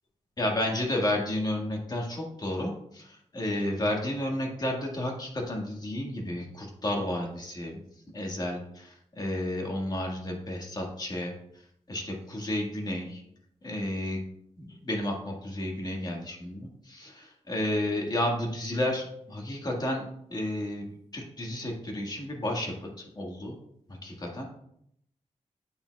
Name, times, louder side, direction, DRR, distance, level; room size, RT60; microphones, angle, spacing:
voice 1, 0.4-7.8 8.1-11.4 11.9-13.2 13.6-14.2 14.6-20.0 20.3-20.9 21.1-23.6 24.0-24.5, left 1 dB, 35° left, 1 dB, 1.7 m, -32 dB
8.6 x 6.9 x 2.3 m, 0.72 s
wide cardioid pair, 100°, 12 cm